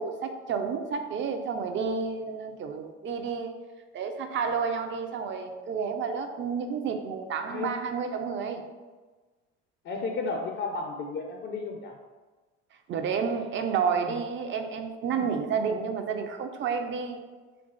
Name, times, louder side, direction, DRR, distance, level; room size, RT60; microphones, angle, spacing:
voice 1, 0.0-3.5 3.9-8.6 12.9-17.2, right 6 dB, 35° right, 6 dB, 0.5 m, -30 dB
voice 2, 7.5-7.8 9.8-12.0 13.9-14.2 15.1-15.3, left 3 dB, 35° left, 2 dB, 0.4 m, -33 dB
2.9 x 2.4 x 3.6 m, 1.3 s
hypercardioid pair, 65°, 34 cm